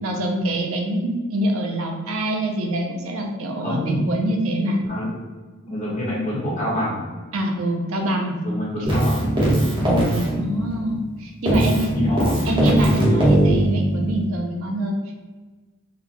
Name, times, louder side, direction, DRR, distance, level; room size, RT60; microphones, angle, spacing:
voice 1, 0.0-4.8 7.3-8.3 8.8-8.9 9.8-9.9 10.4-12.0 12.4-14.9, right 1 dB, 80° right, 2 dB, 0.5 m, -25 dB
voice 2, 3.6-4.0 4.9-5.1 5.6-7.1 8.4-9.3 11.9-12.4, equal, 35° left, -8 dB, 1.4 m, -26 dB
Keyboard (musical), 8.8-11.1 11.5-14.2, right 1 dB, 25° right, 0.9 m, -20 dB
4.0 x 2.3 x 2.9 m, 1.3 s
head